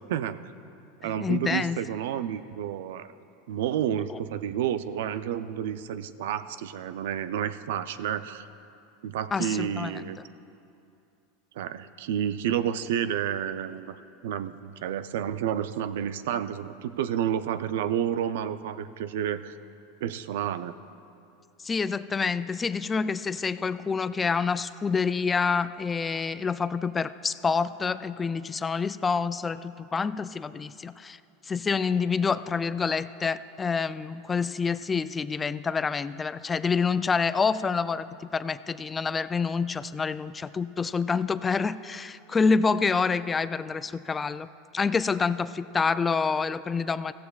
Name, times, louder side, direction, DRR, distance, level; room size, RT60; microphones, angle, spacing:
voice 1, 0.1-0.5 1.0-3.1 3.5-8.5 9.0-10.2 11.6-19.5 20.0-20.7, right 10 dB, 75° right, 13 dB, 0.4 m, -30 dB
voice 2, 1.0-1.8 4.1-4.2 9.3-10.0 21.6-31.2 31.5-44.5 44.7-47.1, left 5 dB, 20° left, 14 dB, 0.3 m, -27 dB
16.0 x 15.0 x 2.4 m, 2.7 s
supercardioid pair, 115°, 0 cm